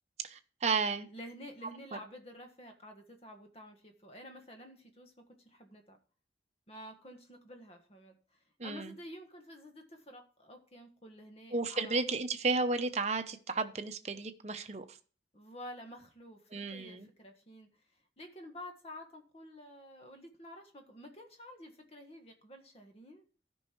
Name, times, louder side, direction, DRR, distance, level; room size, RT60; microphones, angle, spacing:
voice 1, 0.2-1.1 1.9-2.0 8.6-8.9 11.5-15.0 16.5-17.1, right 3 dB, 40° right, 8 dB, 0.8 m, -33 dB
voice 2, 1.1-6.0 6.7-11.9 15.3-17.7 18.2-23.2, equal, 35° left, 5 dB, 1.6 m, -50 dB
13.0 x 5.5 x 4.5 m, 0.39 s
head